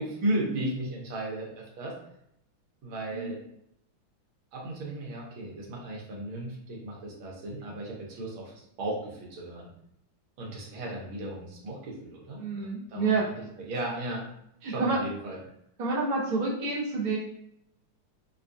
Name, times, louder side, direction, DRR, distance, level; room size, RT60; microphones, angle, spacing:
voice 1, 0.0-2.0 2.8-3.4 4.5-9.7 10.4-13.2 13.6-14.3 14.6-15.4, right 1 dB, 75° right, -3 dB, 1.7 m, -35 dB
voice 2, 12.4-13.2 14.6-15.0 15.8-17.2, right 4 dB, 40° right, -6 dB, 0.7 m, -28 dB
4.7 x 2.3 x 2.6 m, 0.75 s
omnidirectional pair, 2.3 m